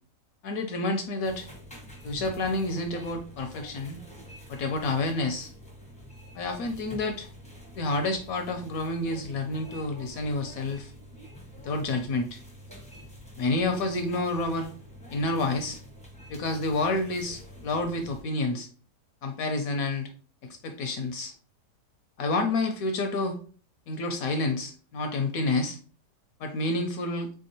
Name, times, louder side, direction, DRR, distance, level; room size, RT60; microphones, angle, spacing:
voice 1, 0.4-1.5 2.0-4.0 4.5-5.5 6.3-7.3 7.8-10.9 11.6-12.4 13.4-14.7 15.1-15.8 16.3-18.7 19.2-20.1 20.4-21.3 22.2-23.4 23.9-25.8 26.4-27.3, left 2 dB, 70° left, 5 dB, 0.9 m, -29 dB
sound 1, 1.2-18.2, equal, 10° left, 0.4 m, -47 dB
3.5 x 3.4 x 2.7 m, 0.40 s
omnidirectional pair, 1.8 m